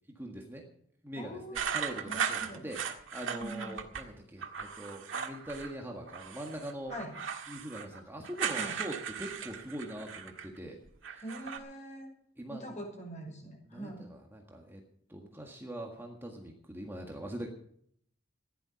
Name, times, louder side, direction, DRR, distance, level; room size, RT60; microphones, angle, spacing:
voice 1, 0.1-0.6 1.0-2.8 3.1-6.9 7.5-10.8 12.4-12.7 13.7-14.8 15.1-17.5, right 1 dB, 10° right, 1 dB, 1.7 m, -42 dB
voice 2, 1.1-1.7 2.0-2.7 3.3-3.8 6.9-7.1 8.6-8.7 11.2-12.1 12.5-14.1, right 1 dB, 40° left, 1 dB, 6.0 m, -43 dB
sound 1, 1.5-4.0 4.4-5.7 6.1-10.6 10.9-11.6, right 7 dB, 75° right, 1.8 m, -37 dB
15.5 x 11.5 x 5.9 m, 0.66 s
head